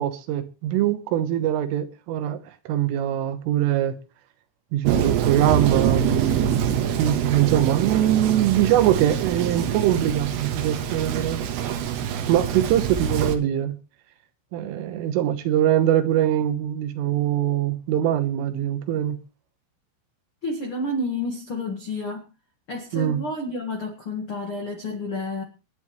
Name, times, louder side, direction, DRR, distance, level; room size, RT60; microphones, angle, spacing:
voice 1, 0.0-2.4 2.7-4.0 4.7-11.4 12.3-13.8 14.5-19.2 22.9-23.2, right 11 dB, 85° right, 3.7 m, -22 dB
Thunder, 4.8-13.4, right 9 dB, 70° right, 3.0 m, -25 dB
voice 2, 20.4-22.2 22.7-25.4, left 2 dB, 75° left, 1.2 m, -30 dB
26.5 x 9.9 x 3.2 m
omnidirectional pair, 5.6 m